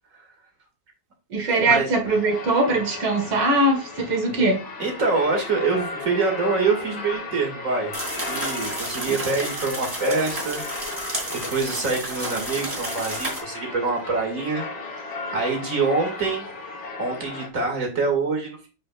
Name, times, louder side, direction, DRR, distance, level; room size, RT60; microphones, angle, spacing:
voice 1, 1.3-4.6, right 2 dB, 85° right, 2.6 m, -21 dB
sound 1, 2.1-17.5, left 3 dB, 70° left, 2.6 m, -35 dB
voice 2, 4.8-7.9 8.3-11.0 11.3-14.7 15.0-16.5 17.0-18.7, right 3 dB, 40° right, 2.6 m, -25 dB
sound 2, 7.9-13.4, right 1 dB, 15° right, 2.6 m, -31 dB
7.4 x 5.5 x 2.5 m
omnidirectional pair, 2.2 m